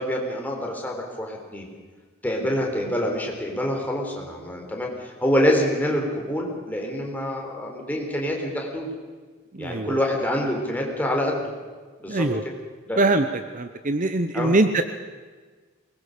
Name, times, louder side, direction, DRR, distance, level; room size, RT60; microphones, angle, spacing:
voice 1, 0.0-1.7 2.2-8.9 9.6-11.4 12.0-12.3 12.9-13.0 14.3-14.5, equal, 10° left, 0 dB, 3.9 m, -26 dB
voice 2, 9.5-10.0 12.1-12.4 13.0-14.8, right 2 dB, 35° right, 9 dB, 0.8 m, -22 dB
23.0 x 20.5 x 6.7 m, 1.4 s
head